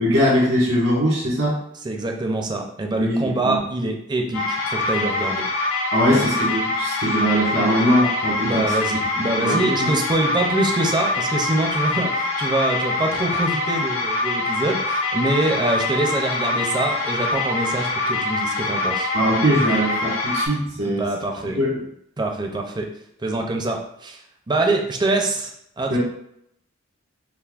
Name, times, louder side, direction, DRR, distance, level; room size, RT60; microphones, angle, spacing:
voice 1, 0.0-1.6 3.0-3.6 5.9-9.0 9.4-9.9 19.1-21.1 21.6-21.8 25.9-26.0, equal, 75° right, -4 dB, 1.4 m, -21 dB
voice 2, 1.8-5.4 6.1-6.3 8.4-19.1 20.8-21.6 22.2-22.9 23.2-24.2 24.5-26.0, right 2 dB, 20° right, 2 dB, 0.4 m, -24 dB
sound 1, 4.3-20.5, left 2 dB, 75° left, 0.9 m, -24 dB
5.6 x 2.0 x 2.4 m, 0.74 s
head